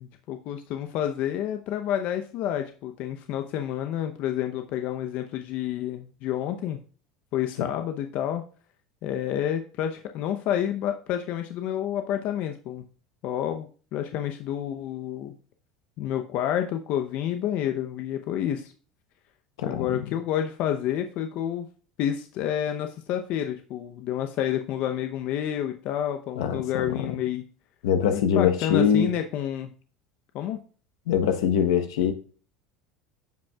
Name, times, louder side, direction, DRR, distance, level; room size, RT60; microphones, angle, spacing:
voice 1, 0.0-6.8 7.3-8.4 9.0-12.8 13.2-15.3 16.0-18.7 19.6-21.7 22.0-27.4 28.1-29.7 30.3-30.6, left 10 dB, 60° left, 6 dB, 0.8 m, -29 dB
voice 2, 19.6-20.1 26.4-27.1 27.8-29.1 31.1-32.1, left 8 dB, 80° left, 7 dB, 1.0 m, -23 dB
14.5 x 5.3 x 2.4 m, 0.40 s
supercardioid pair, 95°, 3 cm